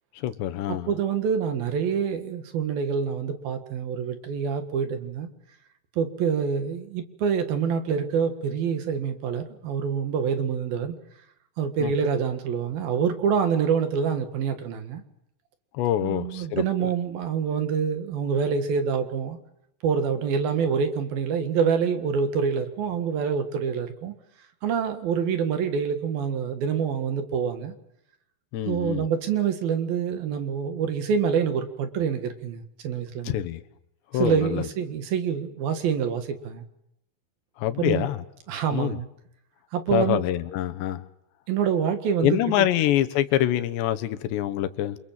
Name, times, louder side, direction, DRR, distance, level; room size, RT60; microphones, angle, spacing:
voice 1, 0.2-0.9 11.8-11.9 15.7-16.6 28.5-29.1 33.2-33.6 34.1-34.7 37.6-38.2 38.7-39.0 39.9-41.0 42.2-45.0, left 12 dB, 85° left, 10 dB, 3.4 m, -25 dB
voice 2, 0.9-5.3 6.0-11.0 11.6-15.0 16.0-19.4 19.8-24.1 24.6-27.7 28.7-33.4 34.1-36.6 37.8-38.1 38.5-39.1 39.7-40.2 41.5-42.7, right 7 dB, 65° right, 8 dB, 3.4 m, -26 dB
28.5 x 26.5 x 7.5 m, 0.76 s
omnidirectional pair, 4.9 m